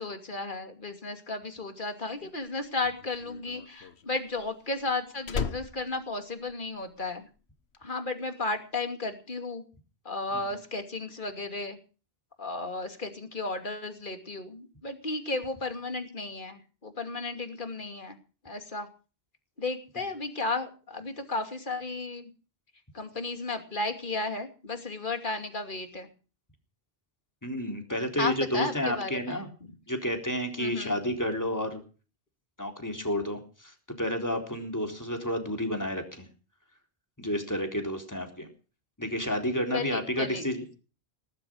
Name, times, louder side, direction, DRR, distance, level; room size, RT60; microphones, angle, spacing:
voice 1, 0.0-7.3 7.8-9.6 10.0-11.8 12.4-18.2 18.4-18.9 19.6-22.3 22.9-26.1 28.2-29.7 30.6-31.0 39.7-40.4, left 3 dB, 50° left, 6 dB, 2.9 m, -34 dB
Slam, 2.3-7.1 7.3-7.8, left 6 dB, 80° left, 1.4 m, -37 dB
voice 2, 27.4-29.5 29.9-31.8 32.6-36.3 37.2-38.5 39.0-40.6, equal, 15° left, 4 dB, 3.9 m, -30 dB
18.5 x 11.5 x 6.3 m, 0.37 s
omnidirectional pair, 1.1 m